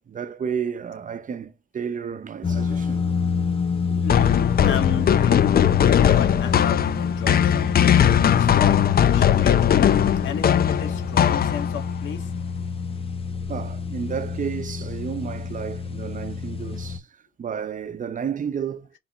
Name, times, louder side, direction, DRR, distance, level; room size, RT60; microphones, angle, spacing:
voice 1, 0.1-3.1 3.9-4.1 13.5-17.1 17.4-18.9, right 7 dB, 40° right, 0.8 m, -31 dB
sound 1, 2.4-17.0, left 5 dB, 30° left, 1.3 m, -27 dB
voice 2, 4.0-7.9 8.3-9.9 10.2-12.3, left 8 dB, 70° left, 1.8 m, -33 dB
sound 2, 4.1-11.9, left 10 dB, 50° left, 0.7 m, -19 dB
5.6 x 4.2 x 5.4 m
cardioid pair, 90°, 20 cm